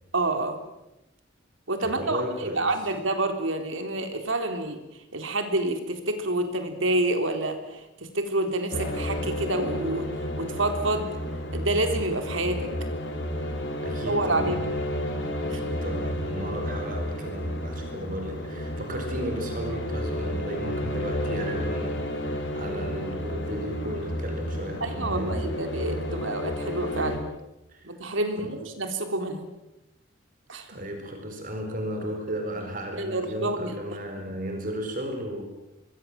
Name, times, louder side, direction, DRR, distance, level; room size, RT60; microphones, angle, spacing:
voice 1, 0.1-0.6 1.7-2.2 2.5-4.8 5.1-7.8 8.1-10.1 10.4-11.1 11.5-12.7 14.1-14.6 15.2-15.6 24.8-27.2 27.8-29.5 30.5-30.7 32.9-33.8, right 2 dB, 75° right, 6 dB, 3.8 m, -28 dB
voice 2, 1.8-2.7 13.8-14.7 15.4-25.5 27.7-27.8 28.4-28.5 30.7-35.4, equal, 40° right, 4 dB, 4.7 m, -34 dB
sound 1, 8.7-27.2, equal, 65° left, 4.4 m, -31 dB
25.5 x 22.5 x 7.7 m, 0.94 s
head